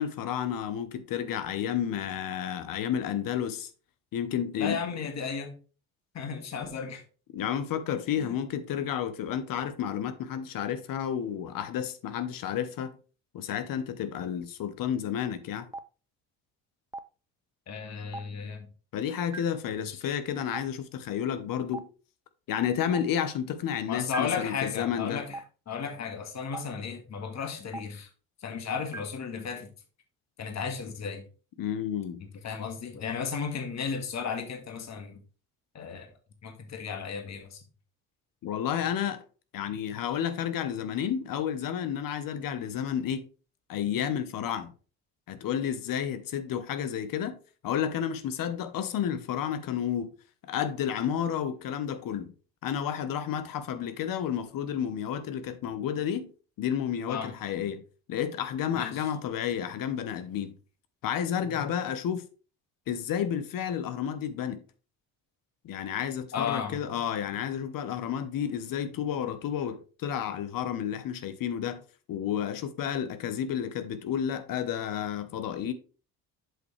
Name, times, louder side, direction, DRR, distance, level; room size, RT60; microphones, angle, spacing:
voice 1, 0.0-3.7 4.1-4.8 7.3-13.0 13.3-15.7 18.9-21.9 22.5-25.2 31.6-32.2 38.4-39.2 39.5-43.2 43.7-44.7 45.3-47.4 47.6-50.1 50.4-52.3 52.6-56.3 56.6-57.8 58.1-60.5 61.0-62.2 62.9-64.6 65.6-71.8 72.1-75.7, left 9 dB, 60° left, 1.0 m, -31 dB
voice 2, 4.6-5.6 6.1-7.0 17.7-18.7 19.9-20.0 23.9-28.1 28.4-29.7 30.4-31.2 32.2-35.2 35.7-36.1 36.4-37.6 57.1-57.3 58.7-59.1 66.3-66.8, left 6 dB, 45° left, 1.8 m, -34 dB
Stream, 15.7-15.8 16.9-17.0 18.1-18.2 19.3-19.4 20.5-20.6 21.7-21.8 22.9-23.0 24.1-24.2 25.3-25.4 26.5-26.6 27.7-27.8 28.9-29.0, right 3 dB, 10° right, 0.3 m, -35 dB
7.8 x 5.3 x 3.2 m
supercardioid pair, 90°, 38 cm